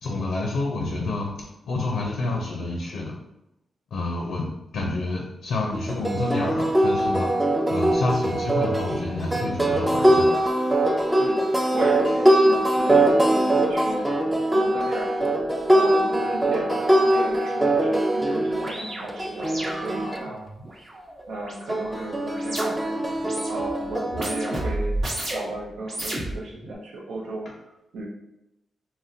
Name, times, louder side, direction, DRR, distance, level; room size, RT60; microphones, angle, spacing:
voice 1, 0.0-3.1 3.9-4.5 4.7-7.3 7.7-10.3, left 2 dB, 85° left, 0 dB, 0.5 m, -28 dB
sound 1, 5.7-20.2 21.7-24.7, right 1 dB, 10° right, 0.4 m, -22 dB
voice 2, 10.7-11.4 11.7-14.2 14.5-15.4 15.7-20.5 21.3-25.0 25.3-27.5 27.9-28.1, right 2 dB, 90° right, -2 dB, 0.6 m, -35 dB
sound 2, 16.9-17.0 17.3-22.9 23.2-23.7 24.1-25.5 25.8-26.7, right 1 dB, 65° right, 1.0 m, -33 dB
3.6 x 2.1 x 2.6 m, 0.88 s
cardioid pair, 70°, 0 cm